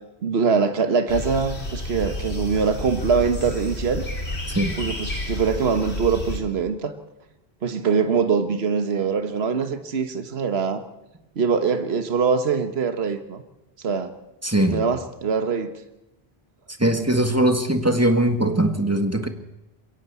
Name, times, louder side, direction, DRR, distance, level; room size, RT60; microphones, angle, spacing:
voice 1, 0.2-4.0 4.8-6.9 7.6-10.8 11.4-13.4 13.8-14.1 14.7-15.7, right 5 dB, 75° right, 9 dB, 1.5 m, -23 dB
sound 1, 1.1-6.4, left 1 dB, 85° left, 3.5 m, -30 dB
voice 2, 14.4-14.8 16.8-19.3, right 1 dB, 15° right, 7 dB, 1.6 m, -20 dB
22.0 x 17.5 x 8.3 m, 0.96 s
omnidirectional pair, 1.1 m